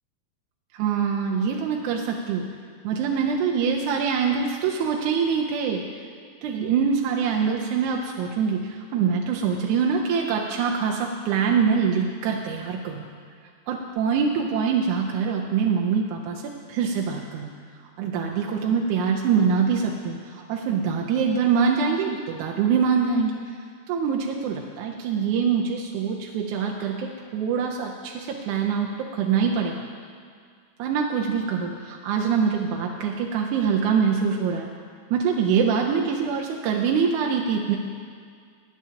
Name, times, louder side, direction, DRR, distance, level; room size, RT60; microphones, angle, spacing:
voice 1, 0.7-2.5 2.8-6.1 6.4-13.1 13.7-17.5 18.0-23.4 23.9-29.8 30.8-34.7 35.1-37.8, right 6 dB, 85° right, 0 dB, 2.2 m, -24 dB
20.0 x 8.6 x 2.8 m, 2.1 s
omnidirectional pair, 3.4 m